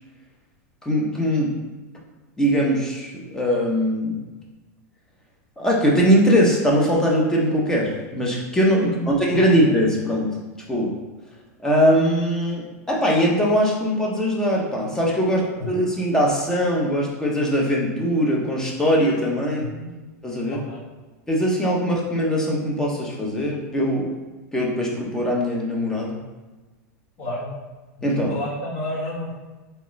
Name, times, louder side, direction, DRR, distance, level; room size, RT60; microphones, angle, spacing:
voice 1, 0.8-1.6 2.4-4.3 5.6-10.4 10.7-11.0 11.6-15.4 15.7-19.7 20.2-20.6 21.3-24.1 24.5-26.2 28.0-28.3, equal, 5° left, -3 dB, 0.8 m, -21 dB
voice 2, 15.3-15.7 19.6-19.8 20.5-20.8 27.2-27.5 28.1-29.3, left 1 dB, 45° left, -5 dB, 1.3 m, -31 dB
3.6 x 3.2 x 3.1 m, 1.2 s
supercardioid pair, 135°, 9 cm